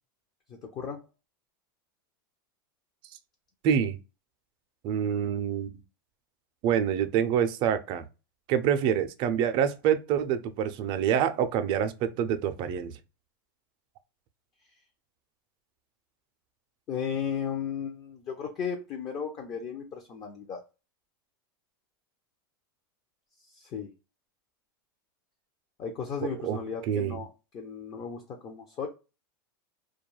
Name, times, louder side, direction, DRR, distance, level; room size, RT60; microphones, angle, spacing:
voice 1, 0.5-1.0 16.9-20.6 23.5-23.9 25.8-27.3 27.5-28.9, left 7 dB, 35° left, 0.5 m, -35 dB
voice 2, 3.6-4.0 4.8-5.7 6.6-8.0 8.5-12.9 26.2-26.6 26.9-27.2, right 9 dB, 45° right, 0.4 m, -26 dB
2.3 x 2.1 x 3.1 m
hypercardioid pair, 120°, 12 cm